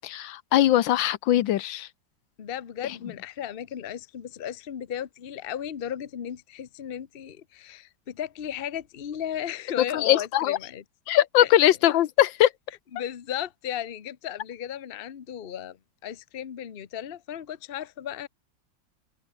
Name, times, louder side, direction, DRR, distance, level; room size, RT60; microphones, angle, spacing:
voice 1, 0.0-1.9 9.9-10.6 11.1-12.5, left 13 dB, 80° left, 1.5 m, -21 dB
voice 2, 2.4-10.8 11.4-11.5 12.9-15.8 16.0-18.3, left 10 dB, 40° left, 0.9 m, -35 dB
open air
omnidirectional pair, 2.1 m